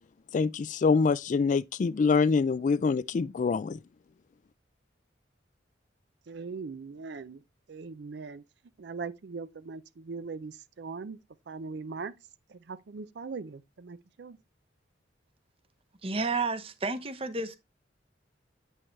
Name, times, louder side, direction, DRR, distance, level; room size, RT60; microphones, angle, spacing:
voice 1, 0.3-3.8, left 4 dB, 40° left, 0.3 m, -25 dB
voice 2, 6.3-7.4 7.7-8.4 8.8-11.2 11.5-12.1 12.5-14.4, right 4 dB, 60° right, 0.5 m, -40 dB
voice 3, 16.0-17.6, right 3 dB, 30° right, 0.9 m, -31 dB
8.6 x 5.4 x 3.2 m
head